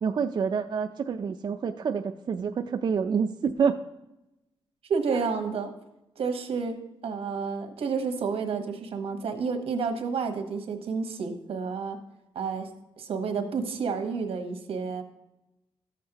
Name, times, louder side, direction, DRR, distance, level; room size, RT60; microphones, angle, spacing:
voice 1, 0.0-3.8 5.1-5.2, right 6 dB, 50° right, 5 dB, 0.4 m, -27 dB
voice 2, 4.8-5.7 6.2-6.7 7.0-12.0 12.3-12.7 13.0-15.0, right 5 dB, 90° right, 5 dB, 1.2 m, -30 dB
13.0 x 7.4 x 2.9 m, 0.94 s
wide cardioid pair, 120°, 10 cm